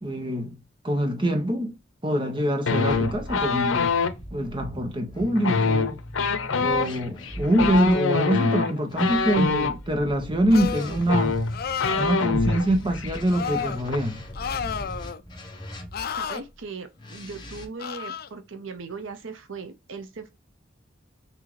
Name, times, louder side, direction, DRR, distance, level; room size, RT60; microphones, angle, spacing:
voice 1, 0.0-0.6 0.8-1.7 2.0-3.9 4.3-6.0 6.6-11.4 12.0-14.2, right 1 dB, 25° right, 1.1 m, -24 dB
sound 1, 2.7-4.1 5.4-9.7 10.7-10.8 11.0-12.7 12.9-13.2 13.5-14.0, left 4 dB, 85° left, 0.7 m, -24 dB
sound 2, 2.9-8.0 8.9-16.3 17.0-17.7, equal, 25° left, 1.2 m, -39 dB
sound 3, 10.5-11.0 11.5-12.1 13.3-13.8 14.3-15.2 15.9-16.4 17.8-18.3, left 7 dB, 50° left, 0.4 m, -31 dB
voice 2, 16.2-20.3, right 4 dB, 75° right, 0.7 m, -38 dB
5.9 x 2.8 x 3.1 m
head